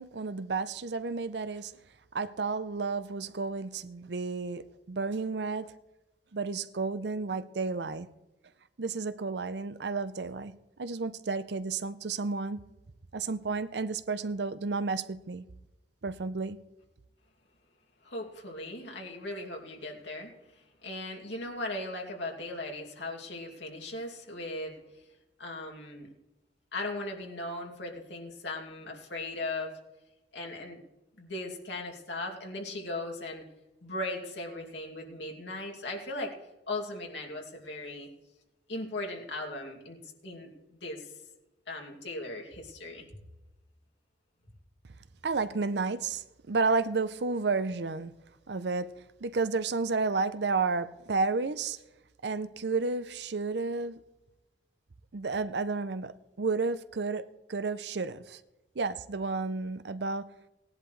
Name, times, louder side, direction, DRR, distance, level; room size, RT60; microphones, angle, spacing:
voice 1, 0.0-1.7 2.1-5.7 6.3-8.1 8.8-12.7 13.1-15.5 16.0-16.6 45.2-48.1 48.5-48.9 49.2-51.8 52.2-54.0 55.1-58.4 58.8-60.3, right 4 dB, 70° right, 0.6 m, -32 dB
voice 2, 18.0-24.8 25.4-26.1 26.7-29.7 30.3-30.8 31.2-33.4 33.8-36.3 36.7-38.1 38.7-41.1 41.7-43.1, left 2 dB, 85° left, 2.6 m, -38 dB
18.5 x 10.5 x 3.2 m
head